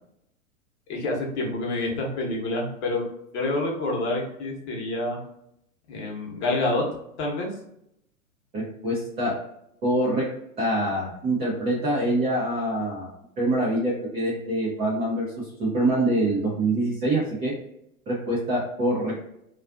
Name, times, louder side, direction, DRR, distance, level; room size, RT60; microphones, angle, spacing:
voice 1, 0.9-3.0 3.3-5.2 5.9-6.8 7.2-7.5, left 2 dB, 50° left, -1 dB, 1.0 m, -27 dB
voice 2, 8.5-9.4 9.8-10.3 10.6-13.1 13.4-17.5 18.1-19.2, right 1 dB, 15° right, -6 dB, 0.5 m, -25 dB
2.4 x 2.3 x 2.3 m, 0.77 s
hypercardioid pair, 110°, 43 cm